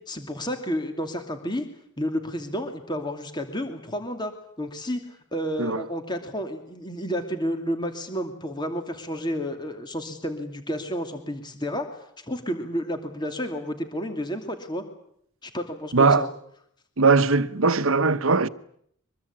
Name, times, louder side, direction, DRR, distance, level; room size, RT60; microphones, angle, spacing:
voice 1, 0.1-1.6 2.0-4.3 4.6-5.0 5.3-14.8 15.4-16.3, equal, 20° left, 2.6 m, -31 dB
voice 2, 15.9-16.3 17.0-18.5, right 4 dB, 70° right, 1.0 m, -20 dB
24.0 x 22.5 x 8.7 m
head